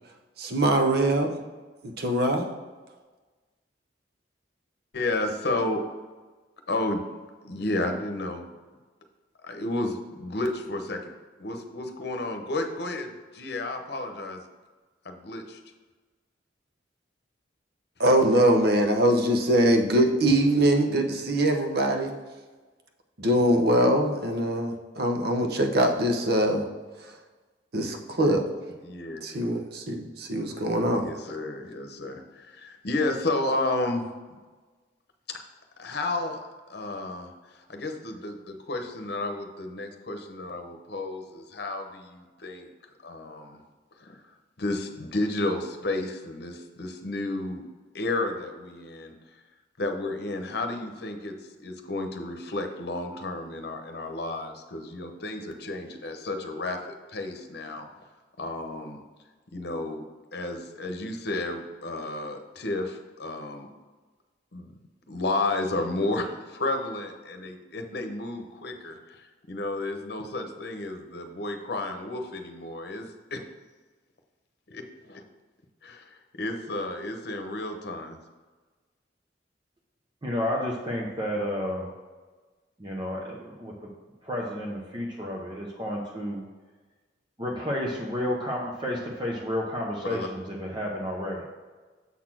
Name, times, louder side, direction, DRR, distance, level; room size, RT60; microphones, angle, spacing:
voice 1, 0.4-1.4 1.8-2.5 18.0-22.1 23.2-26.7 27.7-28.5 29.2-31.1, right 1 dB, 60° right, 4 dB, 0.9 m, -23 dB
voice 2, 4.9-5.8 6.7-7.0 7.4-8.5 9.4-11.0 11.4-14.4 15.0-15.6 28.8-29.2 31.0-34.1 35.3-35.4 35.8-36.4 36.7-42.7 43.0-43.6 44.0-44.2 44.6-47.7 47.9-49.2 49.8-51.3 51.6-57.9 58.4-59.0 59.5-60.0 60.3-63.7 64.5-64.7 65.1-73.4 74.7-75.2 75.8-78.2 90.0-90.3, left 2 dB, 60° left, 4 dB, 0.9 m, -32 dB
voice 3, 80.2-81.9 82.8-83.7 84.2-86.4 87.4-91.4, left 1 dB, 25° right, -2 dB, 0.8 m, -31 dB
7.2 x 4.2 x 6.0 m, 1.3 s
head